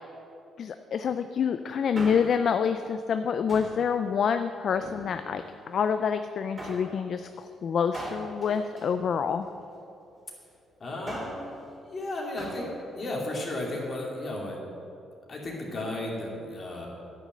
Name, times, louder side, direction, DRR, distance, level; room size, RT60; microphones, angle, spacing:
voice 1, 0.6-9.5, left 7 dB, 60° left, 9 dB, 0.4 m, -27 dB
Male speech man speaking, 1.7-2.5 3.5-3.9 4.7-5.5 6.6-6.9 7.9-9.6 10.8-11.5 12.4-12.7 13.0-13.1, right 1 dB, 30° right, 2.4 m, -40 dB
voice 2, 10.8-11.5 11.8-12.7 12.9-14.6 15.3-16.9, left 1 dB, 40° left, -2 dB, 2.8 m, -34 dB
10.5 x 6.2 x 7.7 m, 2.7 s
cardioid pair, 90°, 0 cm